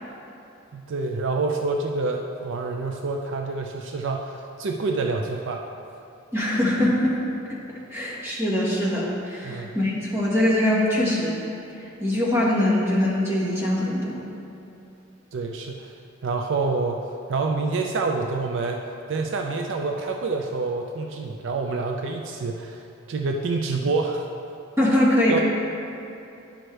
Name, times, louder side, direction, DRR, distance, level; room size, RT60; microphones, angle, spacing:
voice 1, 0.7-5.6 9.4-9.7 15.3-16.0 16.2-18.8 19.1-24.3 25.3-25.4, right 3 dB, 65° right, 2 dB, 0.4 m, -27 dB
voice 2, 6.3-7.2 7.5-7.6 7.9-11.4 11.8-14.2 24.8-25.4, left 1 dB, 15° right, -7 dB, 1.5 m, -22 dB
10.0 x 6.2 x 3.3 m, 2.7 s
head